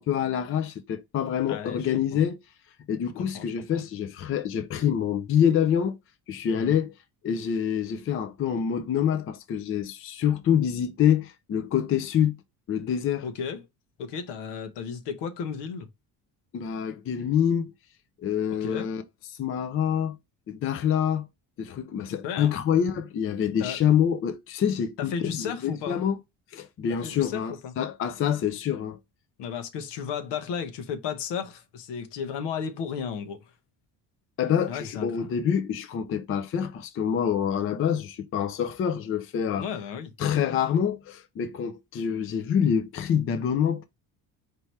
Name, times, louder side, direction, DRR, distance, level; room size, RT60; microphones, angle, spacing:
voice 1, 0.0-2.4 2.9-6.0 6.3-6.9 7.2-12.4 12.7-13.3 16.5-17.7 18.2-19.0 19.4-20.2 20.5-21.3 21.6-26.2 26.5-29.0 34.4-39.7 40.2-43.8, left 8 dB, 35° left, 0.5 m, -26 dB
voice 2, 1.5-1.9 2.1-2.2 3.3-3.8 6.5-6.8 13.2-13.6 14.0-15.9 18.6-18.9 22.1-22.5 23.6-23.8 25.0-26.0 27.0-27.7 29.4-33.4 34.7-35.3 39.6-40.1, left 7 dB, 80° left, 1.0 m, -34 dB
4.6 x 2.9 x 3.2 m
cardioid pair, 140°, 41 cm